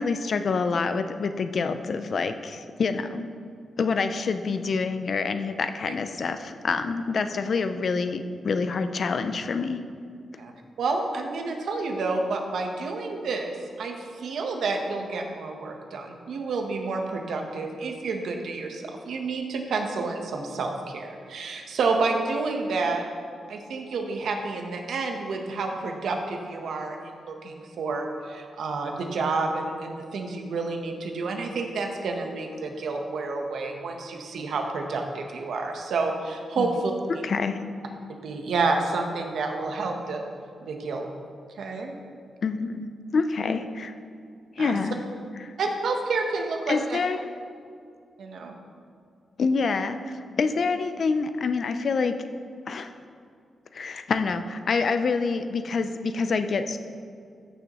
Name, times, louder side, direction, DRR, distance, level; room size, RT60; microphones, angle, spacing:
voice 1, 0.0-3.3 3.8-9.8 36.6-36.7 37.2-37.6 42.4-43.9 44.6-45.0 45.4-45.5 46.7-47.3 49.4-52.2 52.7-52.9 53.7-56.8, left 4 dB, 50° left, 9 dB, 0.5 m, -27 dB
voice 2, 10.8-13.5 13.8-23.0 23.5-37.2 38.2-40.2 40.6-41.1 41.6-41.9 43.5-43.6 44.6-44.8 45.6-47.0 48.2-48.6, right 3 dB, 75° right, 3 dB, 1.1 m, -29 dB
14.5 x 6.5 x 3.1 m, 2.2 s
wide cardioid pair, 145°, 0 cm